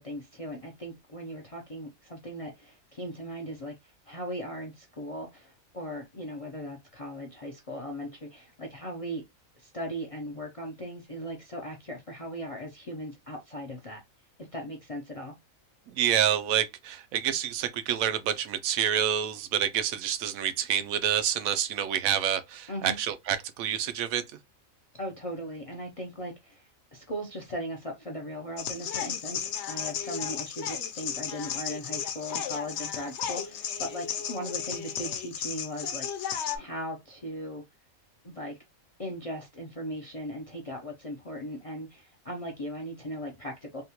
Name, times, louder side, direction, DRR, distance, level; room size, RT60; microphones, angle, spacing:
voice 1, 0.0-9.2 9.6-14.0 14.5-15.3 22.7-23.0 24.9-36.1 36.5-37.6 38.2-38.6 39.0-43.8, equal, 45° left, 0.4 m, -38 dB
voice 2, 15.9-24.2, right 9 dB, 90° right, 1.0 m, -28 dB
sound 1, 28.6-36.6, left 8 dB, 65° left, 0.8 m, -34 dB
3.5 x 2.3 x 2.8 m
omnidirectional pair, 1.4 m